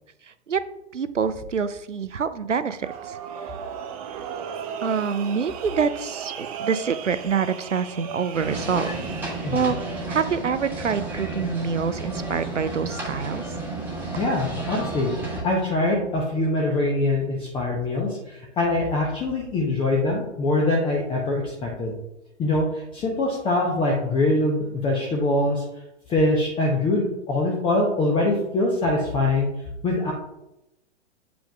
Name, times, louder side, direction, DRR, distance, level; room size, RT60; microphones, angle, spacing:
voice 1, 0.9-3.2 4.8-8.9 9.5-9.8 10.1-13.4, right 6 dB, 90° right, 13 dB, 0.5 m, -26 dB
sound 1, 2.8-10.0, right 8 dB, 30° right, 0.5 m, -36 dB
sound 2, 8.3-15.4, right 2 dB, 5° right, 1.3 m, -32 dB
voice 2, 14.1-22.0 22.4-25.6 26.1-29.5 29.8-30.1, left 2 dB, 15° left, -1 dB, 0.7 m, -23 dB
8.6 x 5.1 x 2.3 m, 0.89 s
figure-of-eight pair, 110°, 36 cm